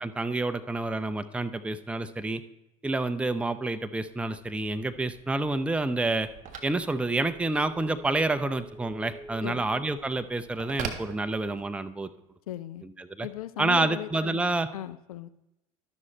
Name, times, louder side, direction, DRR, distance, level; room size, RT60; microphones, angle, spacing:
voice 1, 0.0-2.4 2.8-6.3 6.6-12.1 13.0-13.3 13.6-14.7, right 2 dB, 5° right, 11 dB, 0.5 m, -28 dB
Telephone, 4.1-11.9, right 5 dB, 45° right, 1.6 m, -44 dB
voice 2, 12.5-12.8 13.2-14.4 14.7-15.3, left 12 dB, 85° left, 13 dB, 0.5 m, -37 dB
12.5 x 6.1 x 4.3 m, 0.93 s
hypercardioid pair, 70°, 18 cm